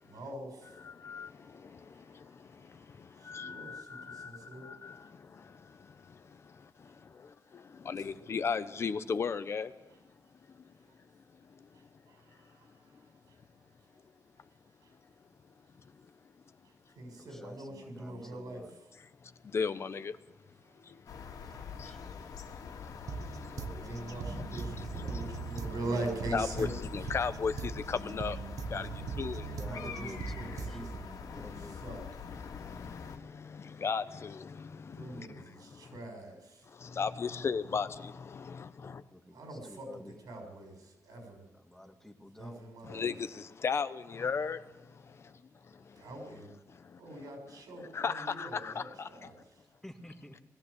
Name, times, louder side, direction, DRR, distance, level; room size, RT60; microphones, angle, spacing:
voice 1, 0.0-4.7 5.0-5.1 7.8-8.1 10.2-10.3 10.8-14.1 14.4-15.2 15.7-15.9 16.6-18.9 20.6-26.7 27.0-27.1 29.4-32.3 34.9-36.6 39.0-41.5 42.3-43.1 46.0-46.5 47.0-49.7, right 2 dB, 85° right, 6.5 m, -45 dB
voice 2, 3.3-4.3 4.8-4.9 7.9-9.7 19.5-20.1 26.3-26.7 26.9-28.4 28.7-28.9 29.2-29.4 33.8-34.4 37.0-38.1 42.9-43.1 43.6-44.6 47.9-48.8, left 5 dB, 45° left, 1.0 m, -33 dB
voice 3, 17.2-18.7 21.4-22.2 29.0-31.8 38.9-40.2 41.5-42.6 49.8-50.4, left 1 dB, 5° left, 1.8 m, -51 dB
sound 1, 21.1-33.2, left 6 dB, 80° left, 2.4 m, -45 dB
sound 2, 23.1-31.1, right 5 dB, 65° right, 1.2 m, -41 dB
20.5 x 15.0 x 8.4 m
wide cardioid pair, 135°, 6 cm